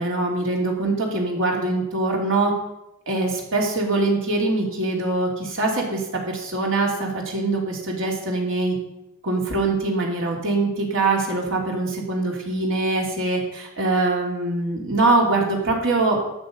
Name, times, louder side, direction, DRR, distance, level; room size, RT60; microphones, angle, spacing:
voice 1, 0.0-2.5 3.1-8.7 9.2-16.2, right 2 dB, 65° right, -1 dB, 3.2 m, -23 dB
12.0 x 8.9 x 5.4 m, 0.89 s
head